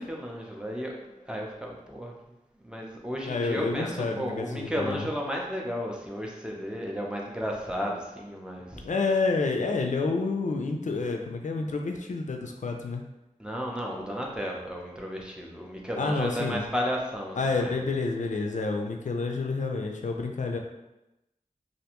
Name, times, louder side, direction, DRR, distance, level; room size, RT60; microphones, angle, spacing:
voice 1, 0.0-2.1 2.6-8.9 13.4-17.8, equal, 5° right, -1 dB, 0.5 m, -33 dB
voice 2, 3.3-5.1 8.8-13.0 16.0-16.6 17.4-20.6, left 3 dB, 65° left, 3 dB, 0.4 m, -29 dB
2.5 x 2.2 x 2.9 m, 0.94 s
wide cardioid pair, 50°, 14 cm